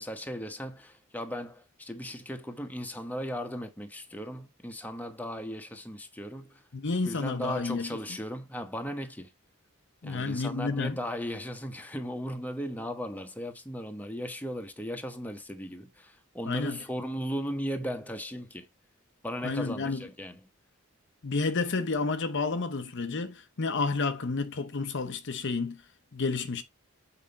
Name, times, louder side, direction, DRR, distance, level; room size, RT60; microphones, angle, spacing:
voice 1, 0.0-6.6 7.0-9.3 10.0-18.7 19.2-20.4, equal, 10° left, 1.2 m, -37 dB
voice 2, 6.7-8.0 10.0-11.0 16.4-16.8 19.4-20.1 21.2-25.8 26.1-26.6, left 4 dB, 55° left, 0.8 m, -30 dB
7.5 x 5.1 x 4.1 m
head